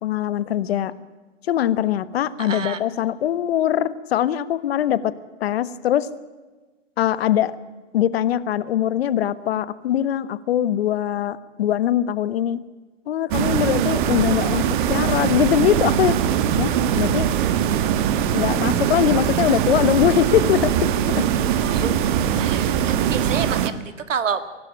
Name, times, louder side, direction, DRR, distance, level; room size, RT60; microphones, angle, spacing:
voice 1, 0.0-0.9 1.5-5.1 5.4-6.1 7.0-7.6 7.9-12.6 13.1-16.2 16.6-17.3 18.3-21.2, left 11 dB, 55° left, 16 dB, 1.3 m, -22 dB
voice 2, 2.4-2.8 21.6-22.0 22.3-24.4, right 6 dB, 85° right, 12 dB, 2.0 m, -28 dB
sound 1, 13.3-23.7, right 9 dB, 40° right, 1.5 m, -21 dB
24.5 x 12.0 x 9.0 m, 1.3 s
hypercardioid pair, 140°, 37 cm